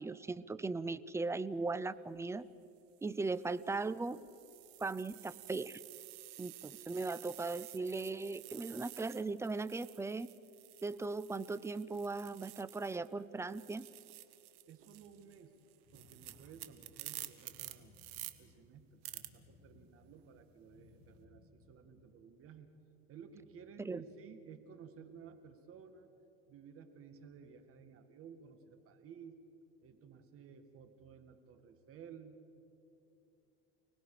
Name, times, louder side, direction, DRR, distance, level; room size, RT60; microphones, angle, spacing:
voice 1, 0.0-2.5 3.0-4.2 4.8-5.8 6.4-10.3 10.8-13.8 23.8-24.0, right 3 dB, 10° right, 16 dB, 0.5 m, -38 dB
sound 1, 2.0-2.2 3.0-13.1 13.4-18.3 19.0-19.3, right 18 dB, 75° right, 1.4 m, -51 dB
voice 2, 14.7-15.5 15.9-18.0 18.4-22.7 23.1-26.1 26.5-29.4 29.8-32.4, right 7 dB, 45° right, 8 dB, 2.0 m, -55 dB
sound 2, 15.8-22.1, left 3 dB, 65° left, 4.7 m, -64 dB
30.0 x 19.5 x 5.0 m, 2.7 s
supercardioid pair, 120°, 31 cm